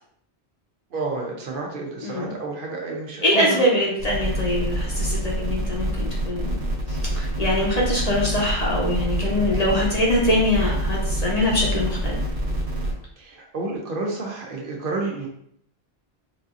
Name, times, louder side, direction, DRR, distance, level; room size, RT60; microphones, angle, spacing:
voice 1, 0.9-3.6 13.2-15.3, right 3 dB, 60° right, -1 dB, 0.8 m, -30 dB
voice 2, 2.0-2.3 3.2-6.6 6.9-12.2, left 1 dB, 40° left, -3 dB, 0.8 m, -23 dB
sound 1, 4.0-12.9, right 1 dB, 85° right, 1.3 m, -26 dB
3.9 x 2.6 x 2.4 m, 0.70 s
omnidirectional pair, 1.1 m